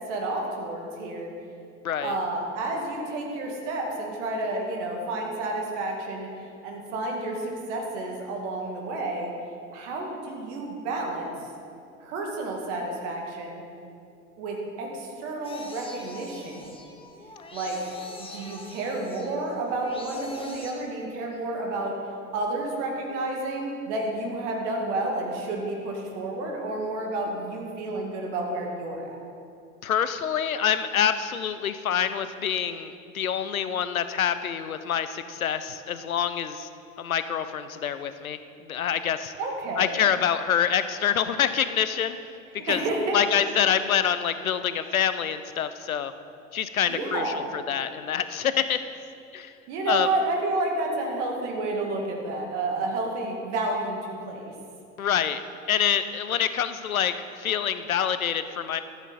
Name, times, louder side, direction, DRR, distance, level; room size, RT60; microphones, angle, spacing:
voice 1, 0.1-1.3 2.0-6.3 6.6-9.3 9.7-11.3 12.0-13.6 14.4-16.8 17.5-17.8 18.2-22.0 22.3-29.2 39.4-40.0 42.7-43.2 46.9-47.5 49.7-54.5, right 2 dB, 60° right, 0 dB, 2.3 m, -30 dB
voice 2, 1.8-2.2 29.8-36.7 37.0-38.4 38.7-39.3 39.8-42.2 42.6-42.8 43.1-46.1 46.5-48.8 49.3-49.5 49.9-50.1 55.0-55.4 55.7-58.8, left 8 dB, 85° left, 12 dB, 0.6 m, -26 dB
sound 1, 15.4-20.7, left 2 dB, 15° left, 1.3 m, -44 dB
13.5 x 8.1 x 4.2 m, 2.5 s
figure-of-eight pair, 75°, 41 cm